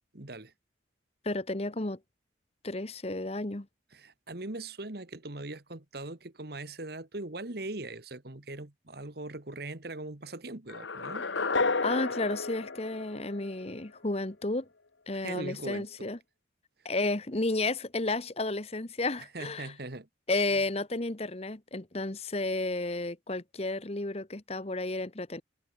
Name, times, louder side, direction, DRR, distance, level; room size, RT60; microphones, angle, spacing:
voice 1, 0.1-0.5 3.9-11.3 15.1-16.1 16.8-16.9 19.2-20.1, right 2 dB, 55° right, 1.7 m, -40 dB
voice 2, 1.2-2.0 2.6-3.7 11.8-14.7 15.1-16.2 16.8-19.7 20.3-25.4, left 2 dB, 35° left, 1.2 m, -32 dB
sound 1, 10.7-13.8, left 4 dB, 80° left, 1.5 m, -32 dB
head